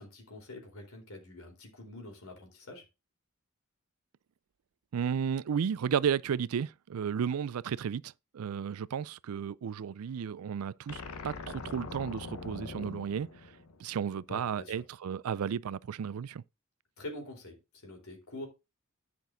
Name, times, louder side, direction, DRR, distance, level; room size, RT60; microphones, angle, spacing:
voice 1, 0.0-2.8 14.3-14.8 17.0-17.6 17.8-18.5, left 1 dB, 70° left, 4.2 m, -45 dB
voice 2, 4.9-13.3 13.8-16.4, right 7 dB, 75° right, 0.4 m, -33 dB
sound 1, 10.9-14.2, left 3 dB, 90° left, 1.1 m, -43 dB
10.5 x 6.0 x 3.9 m
head